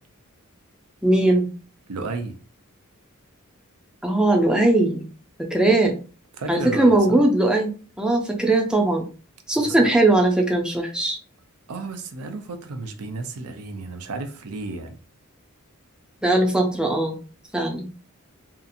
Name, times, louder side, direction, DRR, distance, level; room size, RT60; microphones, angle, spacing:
voice 1, 1.0-1.5 4.0-5.1 5.4-6.0 6.5-7.7 8.0-9.0 9.5-11.2 16.2-17.2 17.5-17.9, right 2 dB, 5° right, 0.4 m, -19 dB
voice 2, 1.9-2.3 6.4-7.2 9.6-9.9 11.7-14.9, right 3 dB, 80° right, 0.5 m, -33 dB
2.7 x 2.4 x 2.6 m
head